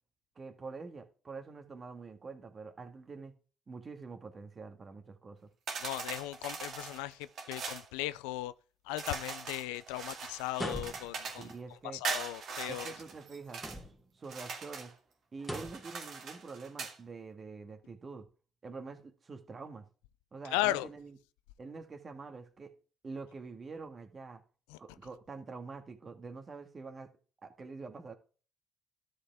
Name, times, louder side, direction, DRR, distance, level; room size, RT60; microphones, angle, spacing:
voice 1, 0.4-3.3 3.7-5.5 11.4-12.0 12.7-13.6 14.1-14.9 15.3-18.3 18.6-19.9 20.3-21.2 21.6-22.7 23.0-24.4 24.8-27.1 27.4-28.2, right 4 dB, 40° right, 1.8 m, -46 dB
sound 1, 5.7-7.9 9.0-11.5 12.0-13.8 14.2-14.9 15.4-17.0, right 5 dB, 60° right, 2.2 m, -41 dB
voice 2, 5.8-7.2 7.5-8.5 8.9-11.5 12.0-12.9 20.5-20.9 24.7-24.8, left 15 dB, 85° left, 0.4 m, -36 dB
sound 2, 10.5-11.3 13.5-14.2 15.4-15.9, equal, ahead, 3.0 m, -41 dB
12.5 x 5.5 x 3.5 m
hypercardioid pair, 55°, 0 cm